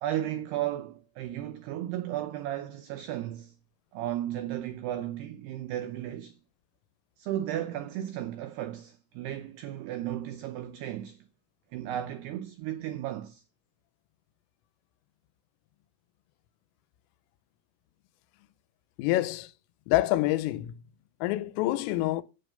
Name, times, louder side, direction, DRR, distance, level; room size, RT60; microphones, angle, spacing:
voice 1, 0.0-3.6 3.9-6.4 7.2-11.3 11.7-13.4, right 12 dB, 85° right, 2.3 m, -34 dB
voice 2, 19.0-19.5 19.9-20.8 21.2-22.2, left 16 dB, 85° left, 3.4 m, -27 dB
9.2 x 9.0 x 5.2 m
omnidirectional pair, 5.8 m